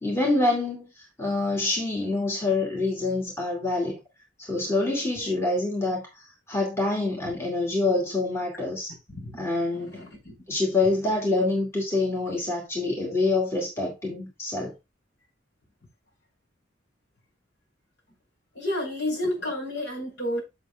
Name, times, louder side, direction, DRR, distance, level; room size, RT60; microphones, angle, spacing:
voice 1, 0.0-0.9 1.2-4.0 4.4-6.1 6.5-8.9 9.4-10.0 10.5-14.7, left 2 dB, 15° left, 2.5 m, -26 dB
voice 2, 9.1-9.5 9.7-10.3 18.6-20.4, left 1 dB, 65° left, 5.3 m, -31 dB
7.5 x 7.4 x 2.4 m
head